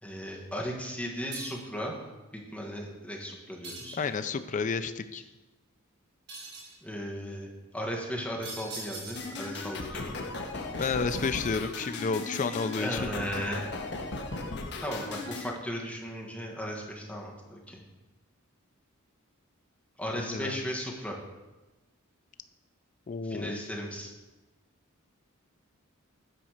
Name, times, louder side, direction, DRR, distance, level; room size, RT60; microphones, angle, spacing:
voice 1, 0.0-1.9 2.5-4.0 6.8-7.5 7.7-10.2 12.8-13.7 14.8-17.8 20.0-21.2 23.2-24.1, equal, 5° left, -1 dB, 1.3 m, -36 dB
sound 1, 1.3-1.8 3.6-4.4 6.3-6.8 8.4-9.5 10.8-11.8, right 3 dB, 55° right, 2.2 m, -43 dB
voice 2, 4.0-5.2 10.8-13.0 20.1-20.6 23.1-23.6, left 4 dB, 35° left, 10 dB, 0.4 m, -31 dB
sound 2, 9.2-15.5, left 3 dB, 55° left, 0.9 m, -37 dB
9.2 x 4.1 x 6.4 m, 1.1 s
head